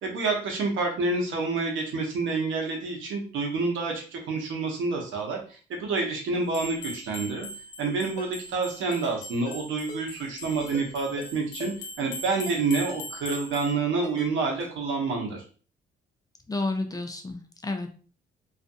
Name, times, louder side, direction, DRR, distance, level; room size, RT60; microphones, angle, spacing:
voice 1, 0.0-7.5 7.8-11.7 12.0-15.4, right 3 dB, 80° right, 0 dB, 0.9 m, -28 dB
sound 1, 6.5-13.7, left 1 dB, 70° left, 0.6 m, -41 dB
Ringtone, 8.2-8.3 8.9-9.2 9.5-9.6 9.9-10.0 10.6-10.9 11.2-11.3 11.6-11.7 12.3-12.6 12.9-13.0 13.3-13.4 14.0-14.3 14.6-14.7, left 3 dB, 35° left, 1.0 m, -40 dB
voice 2, 16.5-17.9, left 2 dB, 20° left, 5 dB, 0.4 m, -31 dB
2.5 x 2.4 x 2.6 m, 0.38 s
cardioid pair, 90°, 20 cm